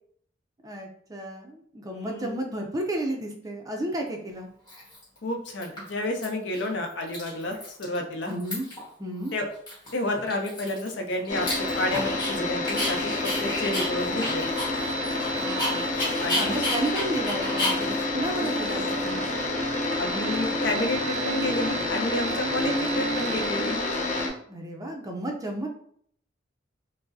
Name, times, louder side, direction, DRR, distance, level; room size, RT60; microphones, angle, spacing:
voice 1, 0.6-4.5 8.3-8.7 9.0-9.3 15.4-16.0 16.4-19.2 24.5-25.7, right 1 dB, 20° right, 2 dB, 0.4 m, -32 dB
voice 2, 1.9-2.4 5.2-8.3 9.3-9.4 9.9-13.1 13.4-14.4 16.2-16.5 20.0-23.8, left 1 dB, 70° left, 3 dB, 0.6 m, -30 dB
Dog, 3.9-4.0 4.7-5.2 5.5-6.2 6.5-6.7 6.9-8.0 8.2-8.9 9.2-9.3 9.7-12.3 12.7-19.3, left 1 dB, 20° left, 1.4 m, -32 dB
sound 1, 11.3-24.3, left 1 dB, 40° left, 0.8 m, -28 dB
4.6 x 2.0 x 2.6 m, 0.64 s
head